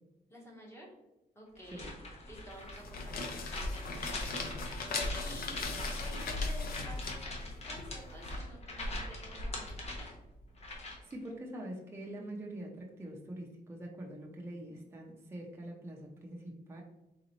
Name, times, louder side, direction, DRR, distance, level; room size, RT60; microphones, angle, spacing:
voice 1, 0.3-0.9 1.3-1.9 2.3-4.4 5.1-10.1, equal, 15° left, -2 dB, 1.2 m, -52 dB
sound 1, 1.6-11.1, left 1 dB, 40° left, 0.9 m, -42 dB
sound 2, 2.7-8.3, left 3 dB, 60° left, 0.7 m, -38 dB
voice 2, 10.7-16.8, right 1 dB, 15° right, -1 dB, 0.5 m, -44 dB
3.9 x 3.8 x 3.0 m, 0.97 s
wide cardioid pair, 160°, 17 cm